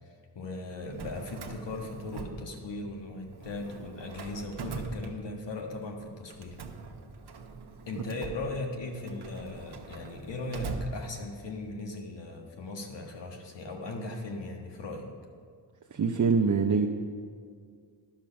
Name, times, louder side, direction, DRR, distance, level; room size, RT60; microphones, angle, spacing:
voice 1, 0.3-6.6 7.9-15.0, left 2 dB, 70° left, 2 dB, 1.5 m, -38 dB
Drawer open or close, 0.8-3.0 3.3-5.7 6.3-11.6, right 4 dB, 60° right, 1.0 m, -42 dB
voice 2, 15.9-16.9, right 5 dB, 40° right, 3 dB, 0.7 m, -24 dB
10.5 x 6.4 x 5.7 m, 2.1 s
cardioid pair, 65°, 44 cm